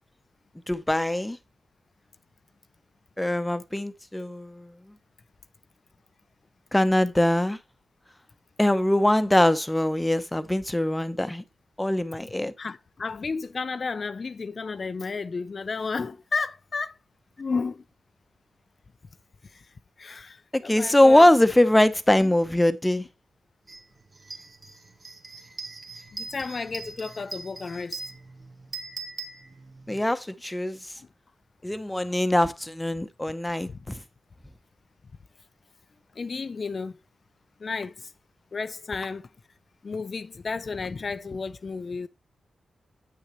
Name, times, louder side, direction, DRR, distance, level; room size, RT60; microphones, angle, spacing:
voice 1, 0.7-1.4 3.2-4.7 6.7-7.6 8.6-11.4 11.8-12.5 20.5-23.1 29.9-30.8 31.6-33.9, left 1 dB, 10° left, 0.8 m, -22 dB
voice 2, 12.6-17.0 17.4-17.8 19.5-19.6 20.0-21.3 22.2-22.3 26.1-28.0 33.7-33.8 36.2-36.9 37.6-38.1 38.5-39.3 39.8-42.1, left 4 dB, 50° left, 0.4 m, -32 dB
sound 1, 23.7-23.8 24.2-30.0, right 3 dB, 45° right, 1.7 m, -40 dB
8.6 x 6.5 x 3.1 m
cardioid pair, 65°, 0 cm